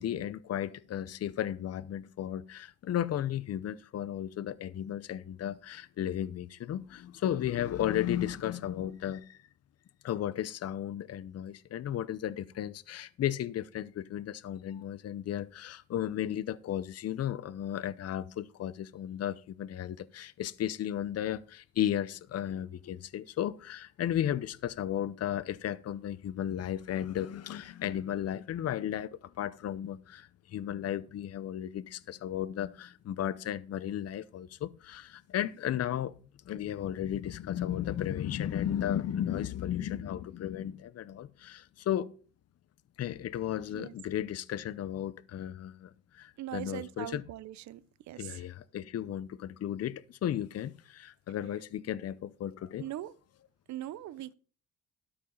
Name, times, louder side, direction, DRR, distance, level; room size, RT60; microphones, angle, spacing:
voice 1, 0.0-9.4 10.0-36.1 36.4-42.1 43.0-47.2 48.2-52.9, left 11 dB, 55° left, 0.7 m, -34 dB
voice 2, 46.4-47.8 48.1-48.3 52.8-53.1 53.7-54.3, right 13 dB, 70° right, 0.6 m, -40 dB
12.5 x 5.4 x 5.5 m
cardioid pair, 90°, 30 cm